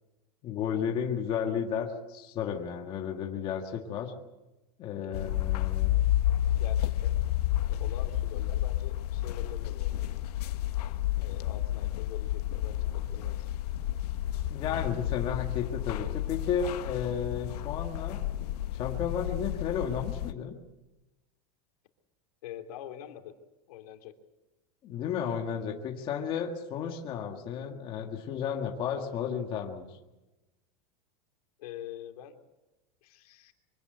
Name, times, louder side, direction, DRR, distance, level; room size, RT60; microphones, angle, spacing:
voice 1, 0.4-4.1 4.8-6.1 14.5-18.2 18.7-20.6 24.8-29.9, left 7 dB, 25° left, 2 dB, 1.7 m, -33 dB
voice 2, 4.9-5.6 6.6-7.2 7.7-10.0 11.2-13.5 22.4-23.4 23.7-24.1 31.6-32.4 33.0-33.5, left 10 dB, 70° left, 5 dB, 3.0 m, -45 dB
sound 1, 5.1-20.3, left 13 dB, 85° left, 1.3 m, -31 dB
24.5 x 17.5 x 8.0 m, 1.0 s
supercardioid pair, 180°, 20 cm